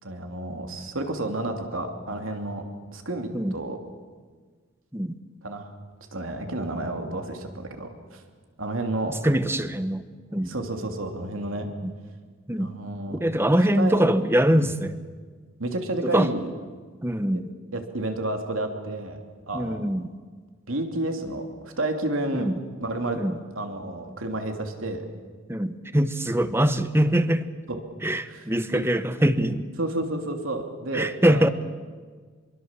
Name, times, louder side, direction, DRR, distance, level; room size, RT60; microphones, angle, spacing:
voice 1, 0.0-2.6 2.9-3.8 5.4-5.7 6.1-8.2 8.6-9.2 10.5-11.7 12.6-13.2 13.6-14.0 14.6-14.7 15.6-16.5 17.7-19.2 19.5-19.8 20.7-21.5 21.8-22.5 22.8-23.2 23.5-25.0 27.7-27.8 28.3-28.9 29.8-31.5, right 2 dB, 75° right, 4 dB, 3.0 m, -30 dB
voice 2, 9.2-10.0 10.3-10.5 11.8-11.9 12.5-12.7 13.1-14.9 16.1-16.3 17.0-17.5 19.5-20.1 22.3-22.5 23.2-23.4 25.5-27.5 28.0-29.7 30.9-31.5, right 1 dB, 10° right, 11 dB, 1.0 m, -23 dB
26.0 x 23.0 x 7.5 m, 1.6 s
head